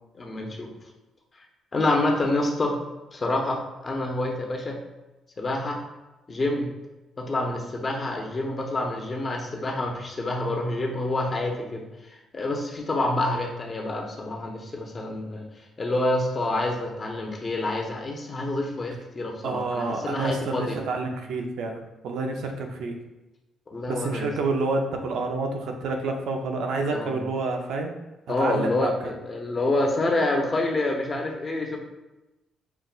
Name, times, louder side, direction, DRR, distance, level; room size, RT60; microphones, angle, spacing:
voice 1, 0.1-0.7 1.7-2.8 3.1-4.8 5.4-5.8 6.3-6.7 7.2-15.4 15.8-20.8 23.7-24.3 26.9-27.2 28.3-31.8, left 2 dB, 35° left, 1 dB, 0.8 m, -27 dB
voice 2, 19.4-23.0 23.9-27.9 28.4-29.1, right 3 dB, 80° right, 3 dB, 0.5 m, -28 dB
5.7 x 2.6 x 2.3 m, 1.0 s
cardioid pair, 90°, 0 cm